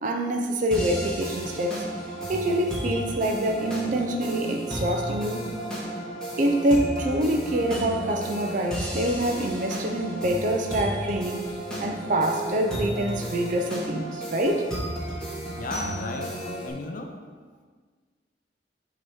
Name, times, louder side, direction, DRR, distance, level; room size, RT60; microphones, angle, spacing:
voice 1, 0.0-1.8 2.3-5.5 6.4-11.5 11.8-14.7, right 1 dB, 45° right, 3 dB, 0.5 m, -26 dB
sound 1, 0.7-16.7, right 1 dB, 5° left, 1.1 m, -33 dB
voice 2, 15.5-17.2, left 2 dB, 50° left, 4 dB, 0.5 m, -35 dB
7.0 x 2.9 x 4.8 m, 1.5 s
head